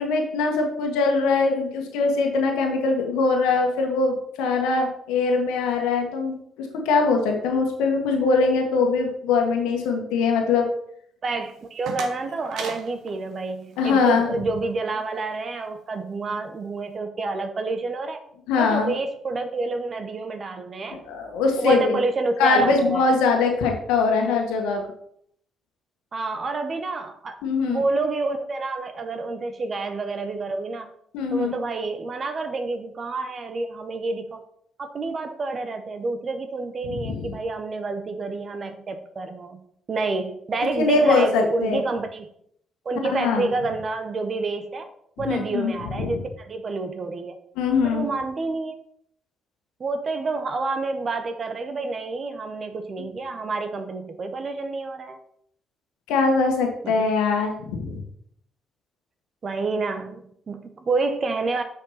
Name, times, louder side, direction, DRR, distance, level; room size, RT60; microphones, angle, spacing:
voice 1, 0.0-10.7 13.8-14.3 18.5-18.9 21.1-22.0 22.4-24.8 27.4-27.8 31.1-31.5 36.9-37.3 40.8-41.8 43.1-43.5 45.3-46.2 47.6-48.1 56.1-58.0, left 4 dB, 85° left, 3 dB, 1.5 m, -22 dB
voice 2, 11.2-18.2 18.6-21.0 21.6-23.2 26.1-27.4 27.7-30.9 31.3-34.4 34.8-39.6 39.9-42.3 42.8-44.9 45.2-47.4 47.8-48.8 49.8-55.2 56.8-57.0 59.4-61.6, right 3 dB, 45° right, 7 dB, 1.1 m, -28 dB
sound 1, 11.4-14.2, right 5 dB, 75° right, 1.5 m, -38 dB
6.4 x 5.6 x 5.8 m, 0.68 s
hypercardioid pair, 55°, 0 cm